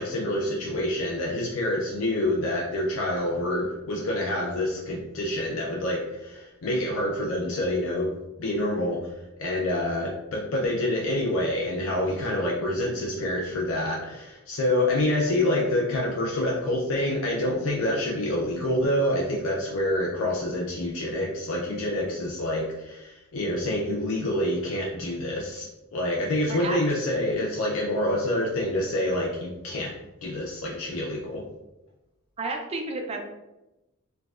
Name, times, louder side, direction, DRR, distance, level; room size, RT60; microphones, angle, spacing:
voice 1, 0.0-8.1 8.4-25.7 25.9-31.4, left 1 dB, 70° left, -3 dB, 0.5 m, -27 dB
voice 2, 32.4-33.3, right 3 dB, 30° right, 3 dB, 0.4 m, -31 dB
4.5 x 2.2 x 2.3 m, 0.98 s
head